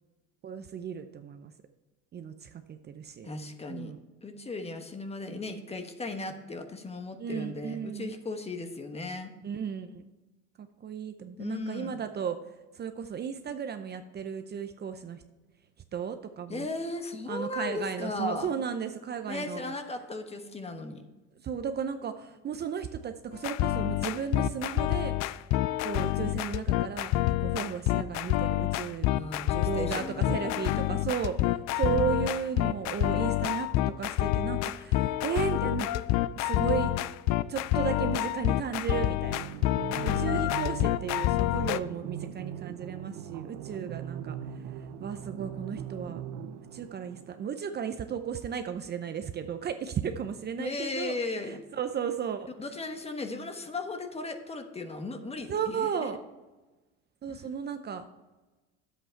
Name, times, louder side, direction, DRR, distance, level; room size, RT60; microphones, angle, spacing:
voice 1, 0.4-1.5 2.1-3.3 3.7-4.0 7.2-8.1 9.4-10.1 10.6-12.4 12.7-15.2 15.9-16.7 17.3-19.7 21.4-25.4 25.8-27.1 27.4-29.2 29.5-35.9 36.4-36.9 37.5-39.5 40.0-44.4 45.0-46.2 46.7-51.1 51.5-52.5 55.5-56.2 57.2-58.0, right 7 dB, 30° right, 8 dB, 0.7 m, -34 dB
voice 2, 3.2-3.9 4.2-9.3 11.4-12.0 16.5-18.5 19.3-21.0 29.1-30.8 50.6-51.6 52.6-56.1, left 3 dB, 20° left, 7 dB, 1.2 m, -36 dB
sound 1, 23.3-41.8, left 15 dB, 55° left, 0.5 m, -28 dB
sound 2, 39.3-47.5, right 10 dB, 70° right, 0.8 m, -40 dB
9.7 x 8.1 x 4.5 m, 1.1 s
supercardioid pair, 105°, 32 cm